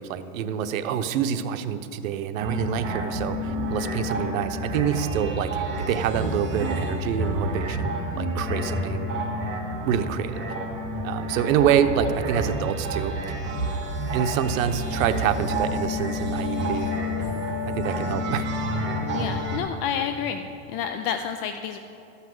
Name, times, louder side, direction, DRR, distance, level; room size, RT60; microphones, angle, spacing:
voice 1, 0.0-9.1 9.9-10.5 11.0-13.4 14.1-16.9 17.7-18.5, right 8 dB, 85° right, 8 dB, 0.9 m, -26 dB
sound 1, 2.4-19.6, equal, 30° right, 1.6 m, -29 dB
voice 2, 19.1-20.4 20.7-21.8, left 8 dB, 40° left, 7 dB, 0.4 m, -29 dB
13.0 x 5.7 x 7.8 m, 2.9 s
supercardioid pair, 150°, 40 cm